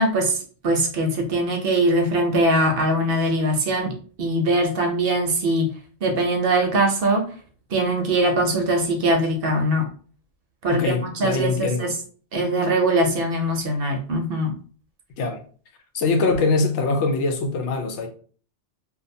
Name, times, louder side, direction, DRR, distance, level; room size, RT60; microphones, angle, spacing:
voice 1, 0.0-3.9 4.2-5.7 6.0-7.3 7.7-9.9 10.6-11.9 12.3-14.5, right 1 dB, 60° right, 0.7 m, -22 dB
voice 2, 10.7-11.9 15.2-15.4 15.9-18.1, left 3 dB, 80° left, 0.9 m, -23 dB
2.5 x 2.3 x 2.6 m
omnidirectional pair, 1.2 m